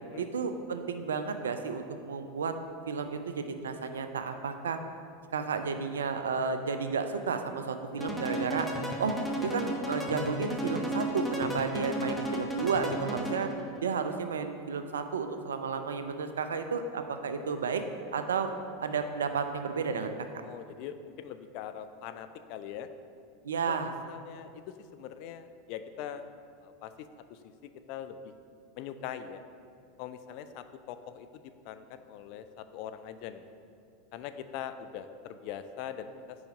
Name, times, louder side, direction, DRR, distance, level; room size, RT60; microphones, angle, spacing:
voice 1, 0.2-2.5 2.9-4.8 5.3-8.7 9.0-9.1 9.4-13.5 13.8-17.8 18.1-18.5 18.8-20.1 23.4-23.9, right 5 dB, 80° right, 8 dB, 0.4 m, -32 dB
sound 1, 8.0-13.6, right 1 dB, ahead, 0.9 m, -34 dB
voice 2, 20.4-22.9 23.7-26.3 26.6-28.2 28.8-29.4 30.0-33.4 34.1-36.4, left 9 dB, 55° left, 10 dB, 0.3 m, -42 dB
5.1 x 4.8 x 5.3 m, 2.4 s
hypercardioid pair, 85°, 0 cm